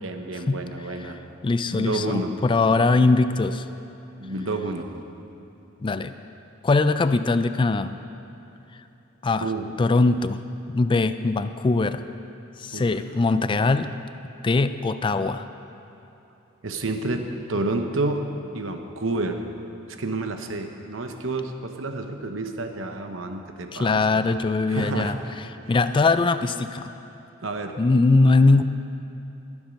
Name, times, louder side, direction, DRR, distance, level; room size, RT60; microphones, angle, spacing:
voice 1, 0.0-1.2 1.7-2.3 4.2-4.9 9.4-9.6 12.7-12.9 16.6-18.2 18.5-19.4 20.0-24.2 24.7-25.1 25.6-25.7 27.4-27.7, right 2 dB, 70° right, 5 dB, 1.0 m, -29 dB
voice 2, 1.4-3.7 5.8-6.1 6.6-8.0 9.2-9.5 9.8-10.4 10.7-12.0 12.6-13.9 14.4-15.4 23.7-26.9 27.8-28.6, left 3 dB, 25° left, 11 dB, 0.3 m, -21 dB
20.5 x 7.3 x 5.3 m, 2.9 s
head